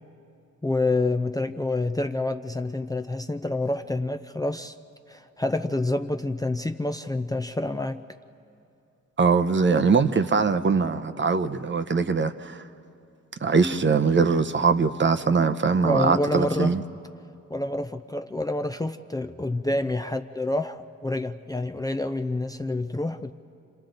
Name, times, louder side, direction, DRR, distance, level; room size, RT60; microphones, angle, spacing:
voice 1, 0.6-4.8 5.1-8.0 15.8-16.7 17.5-23.3, left 2 dB, 10° left, 0.5 m, -28 dB
voice 2, 9.2-12.6 13.4-16.8, right 5 dB, 40° right, 0.7 m, -22 dB
29.0 x 26.5 x 3.9 m
wide cardioid pair, 95°, 30 cm